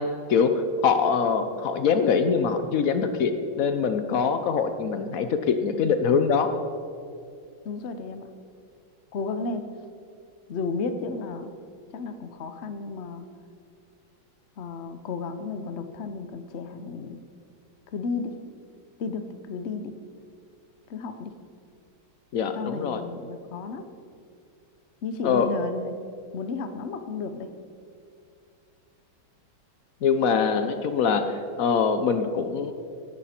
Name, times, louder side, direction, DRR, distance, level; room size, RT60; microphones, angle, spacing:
voice 1, 0.0-6.5 22.3-23.0 25.2-25.5 30.0-31.2 31.6-32.7, left 6 dB, 65° left, 9 dB, 0.8 m, -23 dB
voice 2, 7.6-8.3 9.1-9.6 10.5-11.5 11.9-13.2 14.6-17.2 17.9-18.3 19.0-19.9 20.9-21.3 22.6-23.8 25.0-25.9 26.3-27.5, left 4 dB, 90° left, 9 dB, 0.6 m, -33 dB
16.5 x 11.0 x 4.3 m, 2.4 s
omnidirectional pair, 2.3 m